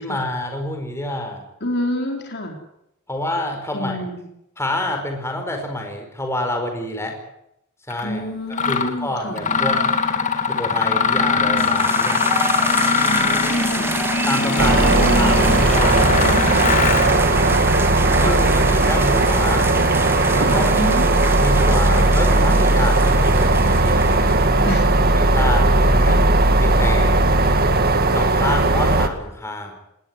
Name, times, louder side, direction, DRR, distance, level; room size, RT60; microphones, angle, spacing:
voice 1, 0.0-1.4 3.1-4.0 4.6-7.2 7.9-8.2 8.6-9.8 10.5-12.7 14.3-16.7 17.0-17.5 18.2-19.6 20.3-20.9 21.4-24.7 25.0-26.2 26.6-27.4 28.1-29.7, left 1 dB, 10° left, 3 dB, 4.8 m, -28 dB
voice 2, 1.6-2.6 3.7-4.2 8.0-9.4 13.1-14.0 14.7-15.6 17.4-17.7 18.2-18.5 20.5-21.1 24.7-24.9 26.0-26.3 28.3-28.6, left 1 dB, 50° left, 3 dB, 4.0 m, -28 dB
Mechanisms, 7.9-8.0 8.5-8.9 9.4-17.2, left 4 dB, 35° left, 2.4 m, -21 dB
sound 1, 11.6-24.8, right 2 dB, 10° right, 1.6 m, -28 dB
Train waiting, 14.6-29.1, right 2 dB, 45° right, 2.0 m, -17 dB
19.5 x 19.0 x 9.7 m, 0.80 s
head